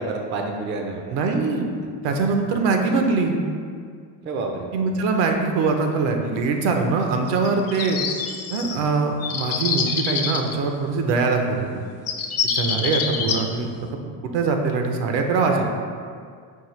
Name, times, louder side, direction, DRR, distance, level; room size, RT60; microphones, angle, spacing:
voice 1, 0.0-1.1 4.2-4.7 15.5-15.6, right 3 dB, 30° right, 2 dB, 0.3 m, -28 dB
voice 2, 1.1-1.7 2.0-3.4 4.7-8.0 8.5-11.8 12.5-13.7 14.0-15.6, right 4 dB, 75° right, 3 dB, 0.7 m, -22 dB
sound 1, 7.3-8.8 9.2-10.5 11.7-11.8 12.1-13.4, left 6 dB, 40° left, 0.4 m, -26 dB
5.5 x 2.6 x 3.1 m, 2.1 s
cardioid pair, 120°, 42 cm